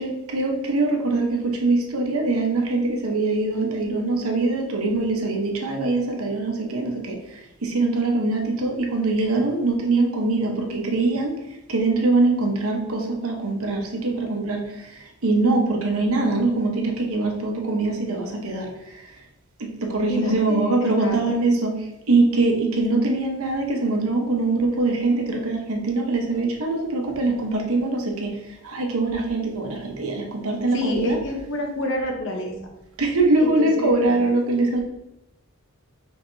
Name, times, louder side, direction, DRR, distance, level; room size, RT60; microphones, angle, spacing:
voice 1, 0.0-11.4 11.7-19.1 19.6-31.2 33.0-34.8, right 2 dB, 75° right, 1 dB, 0.9 m, -23 dB
voice 2, 20.1-21.1 30.7-32.5 33.4-34.2, left 1 dB, 55° left, 2 dB, 0.9 m, -28 dB
5.4 x 3.5 x 2.6 m, 0.90 s
head